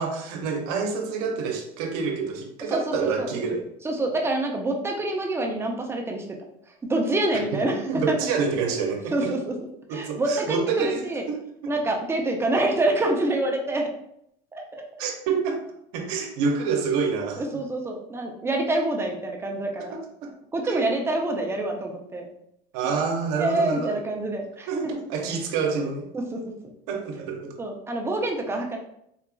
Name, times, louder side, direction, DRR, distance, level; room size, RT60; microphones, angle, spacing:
voice 1, 0.0-3.7 7.5-9.3 9.9-11.7 15.0-15.6 15.9-17.5 19.9-20.3 20.6-20.9 22.7-24.0 24.7-26.1 26.9-27.5, right 5 dB, 80° right, 3 dB, 0.7 m, -28 dB
voice 2, 2.7-3.3 3.8-6.2 6.9-7.8 8.1-8.2 9.1-9.6 9.9-11.2 11.7-13.9 14.5-14.8 17.4-20.0 20.5-22.3 23.4-24.7 26.1-26.5 27.6-28.8, right 2 dB, 15° right, 1 dB, 0.5 m, -26 dB
3.8 x 2.3 x 2.3 m, 0.75 s
supercardioid pair, 130°, 19 cm